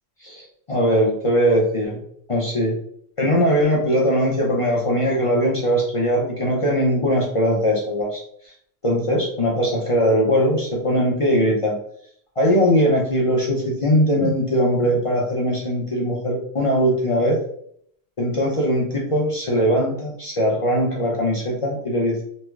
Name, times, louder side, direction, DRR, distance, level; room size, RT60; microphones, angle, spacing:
voice 1, 0.2-2.0 2.3-2.8 3.2-8.5 8.8-11.8 12.4-17.4 18.2-22.2, equal, 60° left, -3 dB, 0.3 m, -20 dB
3.1 x 3.0 x 2.3 m, 0.67 s
omnidirectional pair, 1.3 m